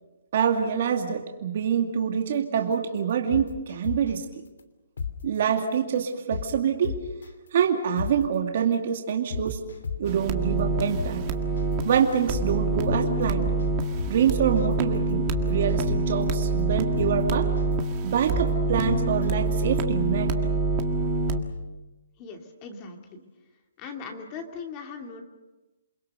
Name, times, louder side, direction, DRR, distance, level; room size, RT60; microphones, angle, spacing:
voice 1, 0.3-4.3 5.2-7.0 7.5-9.6 10.0-11.4 11.8-13.5 14.1-17.5 18.0-20.3, right 8 dB, 45° right, 3 dB, 2.3 m, -26 dB
sound 1, 2.6-2.7 3.1-4.2 4.6-4.7 5.0-5.1 5.6-5.7 6.1-6.5 6.8-7.3 7.6-7.7 8.0-8.1 8.6-8.7 9.1-10.2 10.6-10.7 11.0-11.1 11.6-11.7 12.1-12.5 12.8-13.7 14.0-14.1 14.6-14.7 15.1-16.2 16.6-16.7 17.0-17.1 17.6-17.7 18.1-18.5 18.8-19.3 19.6-19.7, left 6 dB, 85° left, 3.0 m, -32 dB
sound 2, 10.1-21.4, right 3 dB, 25° right, 1.8 m, -26 dB
voice 2, 22.2-23.2 23.8-25.2, left 5 dB, 25° left, 3 dB, 2.5 m, -39 dB
28.5 x 22.0 x 6.7 m, 1.1 s
hypercardioid pair, 165°, 0 cm